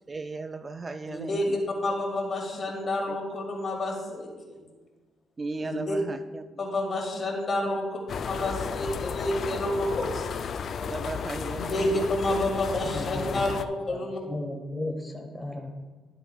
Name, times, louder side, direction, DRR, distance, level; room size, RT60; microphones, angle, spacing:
voice 1, 0.1-1.6 3.1-3.2 5.4-6.5 9.5-9.9 10.7-12.1, right 3 dB, 30° right, 10 dB, 0.3 m, -36 dB
voice 2, 1.1-4.6 5.6-6.0 6.6-8.0 8.3-10.3 11.5-14.2, left 1 dB, 40° left, 0 dB, 2.4 m, -29 dB
sound 1, 8.1-13.7, left 6 dB, 55° left, 0.4 m, -33 dB
voice 3, 12.8-13.4 13.9-15.7, left 2 dB, 10° left, 2 dB, 1.2 m, -35 dB
12.5 x 7.8 x 2.4 m, 1.3 s
cardioid pair, 90°, 0 cm